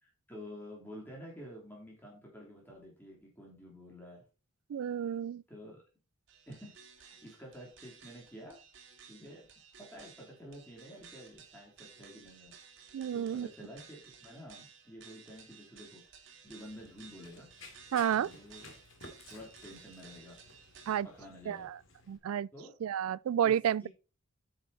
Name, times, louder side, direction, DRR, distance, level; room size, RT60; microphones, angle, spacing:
voice 1, 0.0-4.2 5.5-5.8 6.5-8.6 9.1-9.4 9.8-16.0 16.4-17.5 18.1-18.7 19.3-20.4 21.0-21.7 22.5-22.7 23.4-23.5 23.8-23.9, equal, 10° left, 3.0 m, -50 dB
voice 2, 4.7-5.4 12.9-13.5 17.9-18.3 20.9-21.1 21.5-21.8 22.1-22.5 22.8-23.9, right 9 dB, 90° right, 0.3 m, -31 dB
sound 1, 6.3-21.0, right 6 dB, 60° right, 2.4 m, -56 dB
Run, 16.6-22.2, left 3 dB, 70° left, 2.6 m, -56 dB
9.9 x 6.5 x 4.0 m
head